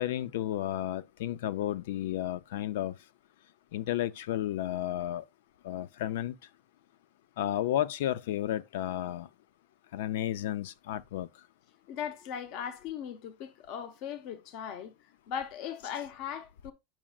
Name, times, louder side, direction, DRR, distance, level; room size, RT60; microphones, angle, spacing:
voice 1, 0.0-2.9 3.7-5.2 5.6-6.3 7.4-9.3 9.9-11.3, left 12 dB, 90° left, 0.4 m, -32 dB
voice 2, 11.9-14.9 15.3-16.7, left 8 dB, 45° left, 0.7 m, -38 dB
8.7 x 6.1 x 2.4 m
supercardioid pair, 170°, 0 cm